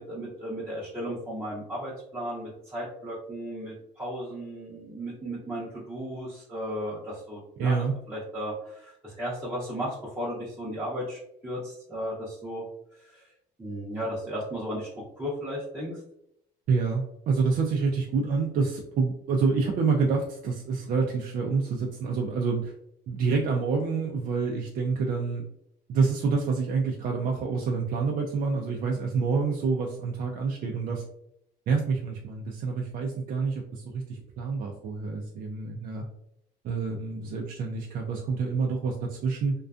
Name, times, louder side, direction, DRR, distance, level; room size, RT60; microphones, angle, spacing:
voice 1, 0.0-7.8 8.1-12.6 12.9-13.3 13.6-14.9 15.2-16.0, equal, 10° right, -8 dB, 0.6 m, -35 dB
voice 2, 7.6-7.9 16.7-22.7 23.1-25.4 25.9-31.0 31.7-36.0 36.6-39.5, right 4 dB, 55° right, 0 dB, 0.4 m, -27 dB
2.4 x 2.2 x 2.4 m, 0.77 s
cardioid pair, 110°, 17 cm